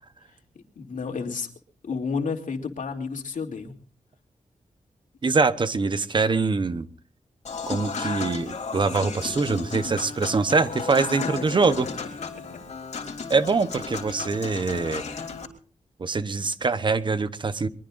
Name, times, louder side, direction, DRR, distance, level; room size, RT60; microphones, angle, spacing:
voice 1, 0.8-1.5 1.8-3.7 11.2-12.1, left 5 dB, 90° left, 3 dB, 2.8 m, -31 dB
voice 2, 5.2-6.9 7.7-11.9 13.3-15.0 16.0-17.7, right 4 dB, 40° right, 12 dB, 0.9 m, -24 dB
Human voice / Acoustic guitar / Piano, 7.4-15.5, left 5 dB, 60° left, 3.4 m, -34 dB
23.0 x 22.5 x 2.6 m, 0.40 s
wide cardioid pair, 170°, 13 cm